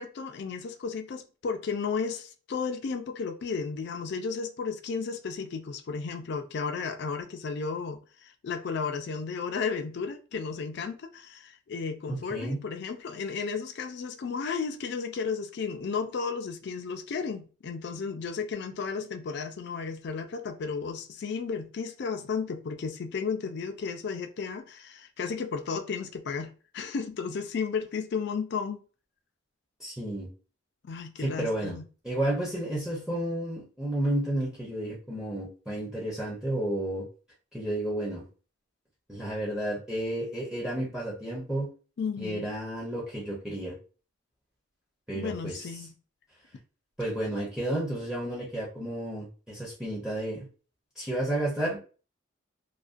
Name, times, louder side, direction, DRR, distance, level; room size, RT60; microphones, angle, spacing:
voice 1, 0.0-28.8 30.9-31.8 42.0-42.5 45.1-45.9, left 5 dB, 50° left, 0.3 m, -33 dB
voice 2, 12.1-12.6 29.8-30.3 31.2-31.8 32.0-37.1 37.5-38.3 39.1-41.7 42.2-43.8 45.1-45.8 47.0-50.5 51.0-51.8, right 1 dB, 5° right, 0.5 m, -31 dB
2.4 x 2.2 x 2.4 m
head